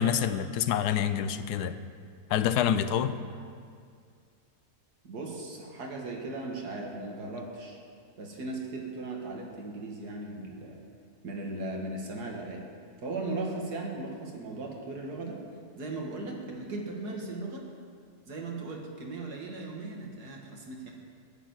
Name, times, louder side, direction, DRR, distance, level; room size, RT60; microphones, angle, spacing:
voice 1, 0.0-1.7 2.3-3.2, left 9 dB, 85° left, 12 dB, 1.2 m, -27 dB
voice 2, 5.0-7.8 8.2-10.8 11.2-12.6 13.0-15.4 15.8-17.7 18.3-20.9, right 2 dB, 80° right, 0 dB, 2.3 m, -37 dB
13.0 x 6.8 x 9.3 m, 2.2 s
omnidirectional pair, 1.7 m